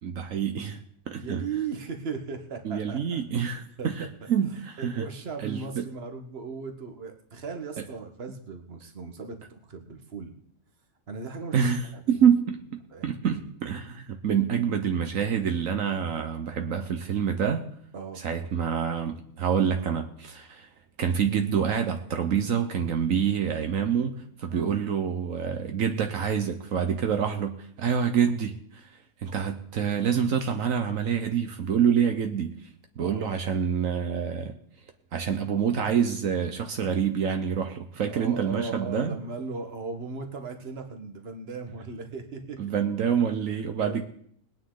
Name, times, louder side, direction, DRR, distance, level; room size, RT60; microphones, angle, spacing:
voice 1, 0.0-1.4 2.6-5.1 5.4-5.8 7.8-7.9 11.5-17.7 18.2-20.7 21.0-28.9 29.2-32.6 33.0-34.6 35.1-39.2 42.6-44.0, right 7 dB, 75° right, 6 dB, 1.3 m, -27 dB
voice 2, 1.2-3.9 4.2-4.3 4.8-10.3 11.1-11.6 11.9-12.2 12.9-13.2 17.9-18.2 24.5-24.7 33.0-33.3 38.1-42.6 43.8-44.0, right 4 dB, 50° right, 6 dB, 1.6 m, -37 dB
20.5 x 9.3 x 3.9 m, 0.65 s
omnidirectional pair, 1.4 m